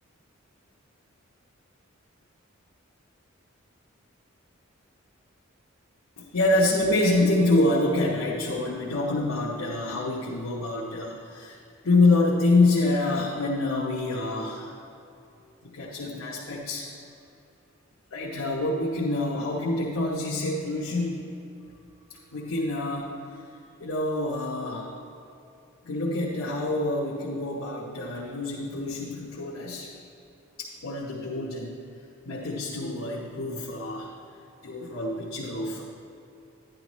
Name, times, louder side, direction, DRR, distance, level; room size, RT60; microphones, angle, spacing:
voice 1, 6.2-11.6 11.8-14.8 15.6-16.9 18.1-21.2 22.1-23.3 23.8-24.9 25.8-29.9 30.6-31.8 32.2-34.1 34.6-35.8, left 2 dB, 75° left, -4 dB, 1.0 m, -26 dB
11.5 x 10.5 x 3.1 m, 2.7 s
head